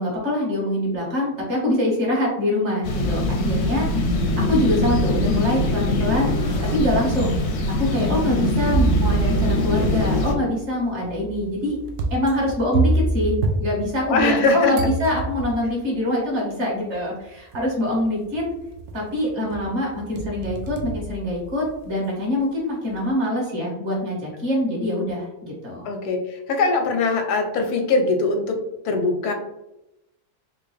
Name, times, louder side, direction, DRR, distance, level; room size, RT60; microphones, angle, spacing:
voice 1, 0.0-4.0 4.4-6.4 6.7-7.4 7.7-11.8 12.1-18.4 18.9-25.9, left 1 dB, 50° right, -3 dB, 1.5 m, -24 dB
sound 1, 2.8-10.3, left 1 dB, 65° left, 0.7 m, -22 dB
sound 2, 4.3-5.1 5.7-5.8 6.7-6.8 8.7-14.4 14.7-15.8 16.9-17.0 17.5-18.0 18.3-19.1 19.5-21.9, right 3 dB, 75° right, 0.6 m, -27 dB
voice 2, 14.1-14.7 25.8-28.6 28.8-29.3, left 3 dB, 85° left, 5 dB, 1.2 m, -21 dB
3.6 x 2.6 x 3.1 m, 0.88 s
omnidirectional pair, 1.6 m